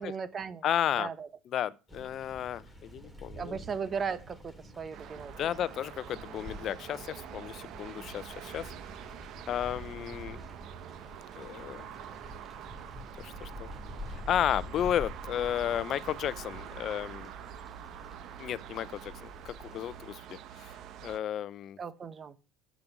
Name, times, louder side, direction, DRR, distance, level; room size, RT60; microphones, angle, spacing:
voice 1, 0.0-0.6 1.0-1.3 3.3-5.5 21.8-22.3, right 6 dB, 35° right, 1.1 m, -37 dB
voice 2, 0.6-1.1 1.5-3.6 5.1-8.7 9.5-10.4 11.4-11.9 13.2-13.7 14.1-17.3 18.4-20.7 21.0-21.8, left 10 dB, 50° left, 0.6 m, -33 dB
sound 1, 1.9-20.1, equal, 10° right, 2.6 m, -47 dB
sound 2, 4.9-21.2, right 10 dB, 60° right, 0.9 m, -46 dB
7.6 x 6.9 x 8.1 m
hypercardioid pair, 85°, 0 cm